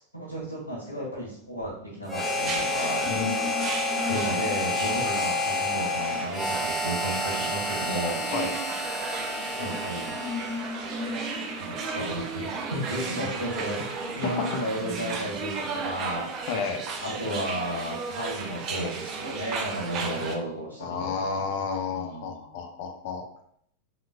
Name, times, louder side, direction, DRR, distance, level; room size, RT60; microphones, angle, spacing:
voice 1, 0.1-3.1 3.9-8.2 9.6-10.1 11.6-13.7 14.1-16.5 17.0-21.4 21.8-22.5, right 1 dB, 85° right, -7 dB, 1.7 m, -33 dB
sound 1, 1.7-5.5 5.9-15.3, left 3 dB, 30° left, 1.4 m, -40 dB
Harmonica, 2.1-10.7, left 2 dB, 5° left, 0.9 m, -29 dB
sound 2, 2.2-20.4, right 4 dB, 35° right, 0.6 m, -35 dB
voice 2, 3.1-3.6 8.3-8.5 14.2-14.5 16.5-16.8 20.8-23.2, left 5 dB, 50° left, 4 dB, 0.6 m, -31 dB
5.1 x 3.7 x 2.3 m, 0.67 s
figure-of-eight pair, 90°, 0 cm